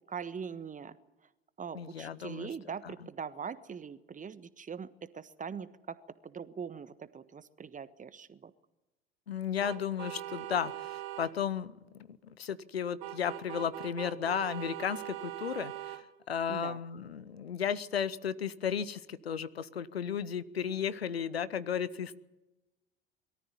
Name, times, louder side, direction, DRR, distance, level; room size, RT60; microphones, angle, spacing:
voice 1, 0.1-1.0 1.6-8.5 16.5-16.8, right 6 dB, 25° right, 14 dB, 1.3 m, -42 dB
voice 2, 1.7-2.5 2.8-2.9 9.3-22.2, left 8 dB, 85° left, 16 dB, 0.9 m, -34 dB
sound 1, 9.6-11.3 13.0-16.0, right 14 dB, 70° right, 2.0 m, -41 dB
23.0 x 13.5 x 9.8 m, 1.0 s
figure-of-eight pair, 65°, 30 cm